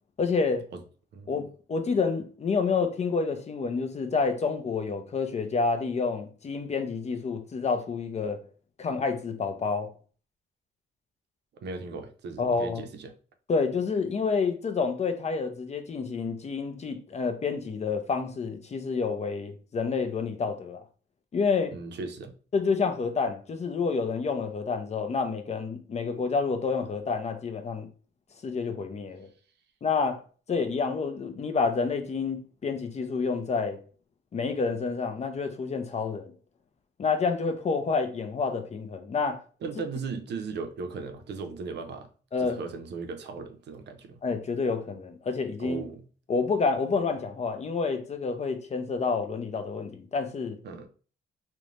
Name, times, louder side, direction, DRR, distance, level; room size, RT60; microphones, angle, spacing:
voice 1, 0.2-0.7 1.3-8.4 8.8-9.9 12.4-12.8 13.5-20.8 21.3-21.7 22.5-27.9 28.4-29.3 29.8-30.2 30.5-33.8 34.3-36.3 37.0-39.4 42.3-42.6 44.2-45.9 46.3-50.6, left 4 dB, 35° left, 0.5 m, -28 dB
voice 2, 11.6-13.1 21.7-22.3 39.6-42.1 42.4-44.2 45.6-46.0 50.6-50.9, right 4 dB, 60° right, 0.5 m, -37 dB
3.0 x 2.1 x 2.5 m
cardioid pair, 90°, 20 cm